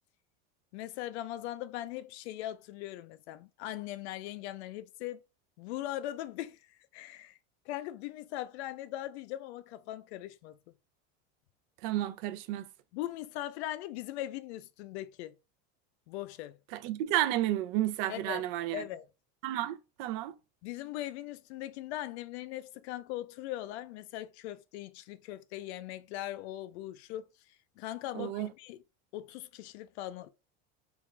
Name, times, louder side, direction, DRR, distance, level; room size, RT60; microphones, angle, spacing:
voice 1, 0.7-5.2 5.6-7.4 7.7-10.6 12.9-15.3 16.1-16.6 18.1-18.5 18.7-19.1 20.6-27.3 27.8-28.8 29.1-30.3, left 14 dB, 90° left, 0.5 m, -40 dB
voice 2, 11.8-12.7 16.7-18.8 19.4-20.3 28.1-28.5, right 14 dB, 65° right, 0.5 m, -32 dB
3.5 x 2.3 x 3.1 m
supercardioid pair, 135°, 32 cm